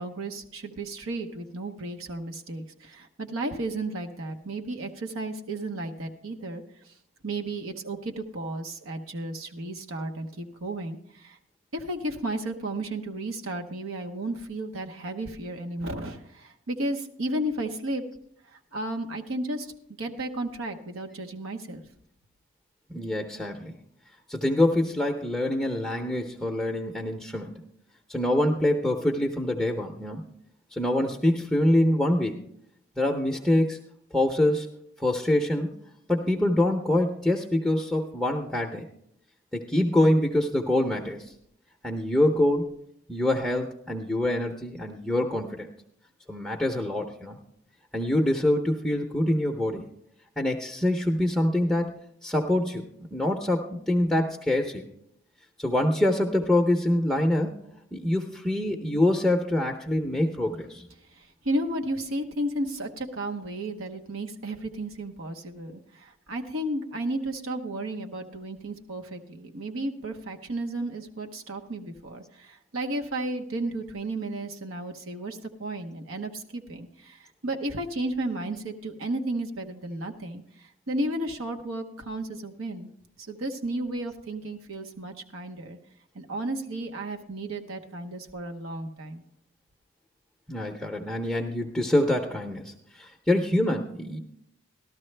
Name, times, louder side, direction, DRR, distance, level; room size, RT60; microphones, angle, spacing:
voice 1, 0.0-6.6 7.2-11.4 11.7-18.0 18.5-19.7 20.0-21.8 61.1-82.9 83.2-85.8 86.1-89.2, right 1 dB, 85° right, 4 dB, 1.0 m, -33 dB
voice 2, 22.9-23.8 24.3-27.6 28.1-30.3 30.7-32.4 33.0-33.8 34.1-35.7 36.1-38.8 39.5-41.3 41.8-42.7 43.1-45.7 46.3-47.4 47.9-49.9 50.4-51.9 52.2-54.9 55.6-57.5 57.9-60.9 90.5-94.2, left 1 dB, ahead, 1 dB, 0.6 m, -25 dB
13.0 x 13.0 x 3.3 m, 0.72 s
head